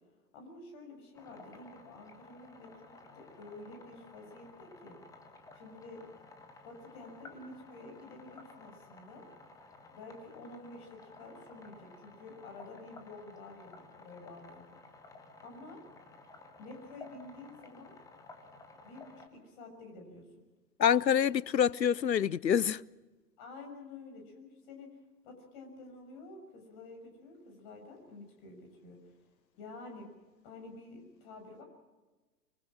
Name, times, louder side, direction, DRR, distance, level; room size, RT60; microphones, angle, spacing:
voice 1, 0.3-5.0 5.5-6.1 6.6-9.2 9.9-14.7 15.4-15.8 16.6-17.9 18.8-20.3 23.4-24.9 25.2-29.0 29.6-30.1 30.4-31.6, left 2 dB, 30° left, 6.5 m, -50 dB
sound 1, 1.1-19.3, left 3 dB, 5° left, 1.3 m, -55 dB
voice 2, 20.8-22.8, left 8 dB, 80° left, 0.7 m, -26 dB
25.5 x 23.5 x 6.2 m
figure-of-eight pair, 125°, 50 cm